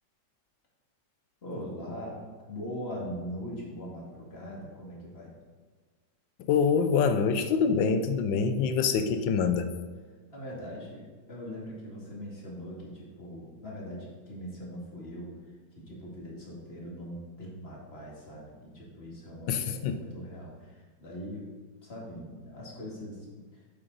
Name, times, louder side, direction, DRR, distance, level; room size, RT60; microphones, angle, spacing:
voice 1, 1.4-5.3 10.3-11.0 11.3-21.5 21.8-23.6, equal, 35° left, -4 dB, 2.4 m, -41 dB
voice 2, 6.5-9.7 19.5-20.0, left 6 dB, 90° left, 8 dB, 1.4 m, -25 dB
9.2 x 7.8 x 4.0 m, 1.5 s
omnidirectional pair, 1.9 m